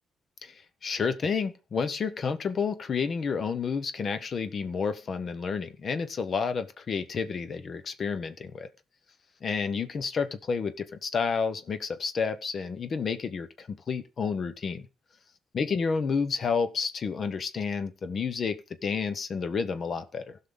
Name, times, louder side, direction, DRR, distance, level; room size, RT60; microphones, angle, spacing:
voice 1, 0.4-8.7 9.4-14.9 15.5-20.4, left 5 dB, 50° left, 0.9 m, -30 dB
15.5 x 5.7 x 3.8 m
cardioid pair, 90°, 0 cm